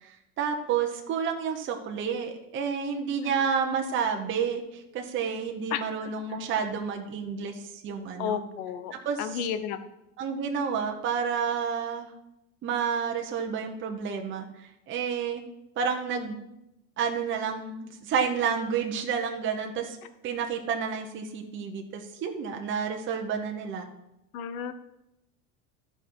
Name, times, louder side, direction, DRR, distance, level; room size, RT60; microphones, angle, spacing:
voice 1, 0.0-8.4 8.9-9.4 10.2-12.1 12.6-15.4 15.8-16.4 17.0-20.0 20.2-23.9, right 6 dB, 30° right, 3 dB, 1.0 m, -30 dB
voice 2, 5.7-6.1 8.2-8.9 9.2-9.8 24.3-24.7, left 8 dB, 80° left, 10 dB, 1.1 m, -32 dB
14.0 x 5.6 x 4.7 m, 0.87 s
cardioid pair, 155°, 42 cm